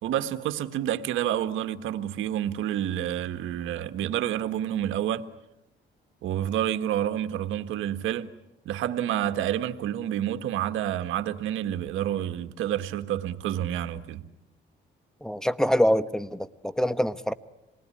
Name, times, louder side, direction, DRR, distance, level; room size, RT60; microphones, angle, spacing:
voice 1, 0.0-5.3 6.2-8.3 8.6-14.3, right 11 dB, 90° right, 1.6 m, -29 dB
voice 2, 15.2-17.3, equal, 5° left, 1.3 m, -25 dB
27.0 x 20.0 x 9.9 m
cardioid pair, 90°, 20 cm